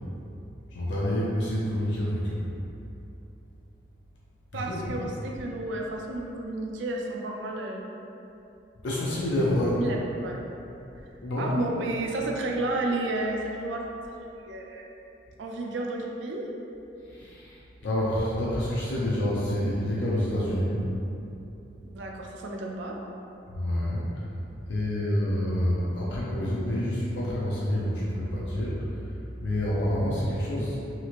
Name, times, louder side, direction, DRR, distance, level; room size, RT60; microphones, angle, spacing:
voice 1, 0.7-2.4 4.5-5.0 8.8-9.8 11.2-11.6 17.0-20.8 23.5-24.1 24.7-29.1 29.4-30.8, left 1 dB, 85° left, -6 dB, 0.5 m, -28 dB
voice 2, 4.5-7.8 9.8-10.0 10.2-10.4 11.0-11.1 11.4-14.0 14.4-14.8 15.4-16.5 21.8-23.0, right 2 dB, 80° right, 0 dB, 0.4 m, -31 dB
2.9 x 2.8 x 2.4 m, 2.8 s
head